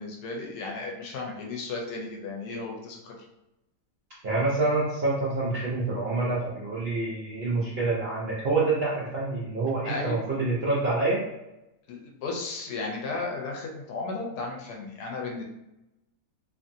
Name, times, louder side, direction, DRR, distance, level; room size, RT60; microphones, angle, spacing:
voice 1, 0.0-3.2 9.9-10.2 11.9-15.4, left 3 dB, 75° left, 0 dB, 1.1 m, -34 dB
voice 2, 4.2-11.2, right 3 dB, 60° right, -7 dB, 0.6 m, -27 dB
2.8 x 2.5 x 2.6 m, 0.91 s
omnidirectional pair, 1.8 m